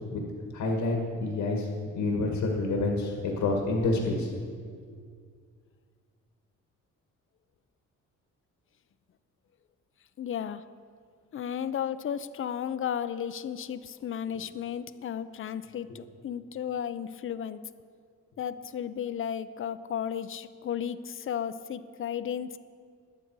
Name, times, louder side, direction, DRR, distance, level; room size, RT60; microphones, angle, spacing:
voice 1, 0.5-1.7 2.0-4.3, left 2 dB, 80° left, 1 dB, 1.7 m, -28 dB
voice 2, 10.2-10.6 11.3-17.6 18.4-22.6, left 9 dB, 45° left, 13 dB, 0.6 m, -34 dB
21.0 x 7.0 x 4.7 m, 2.1 s
cardioid pair, 90°, 30 cm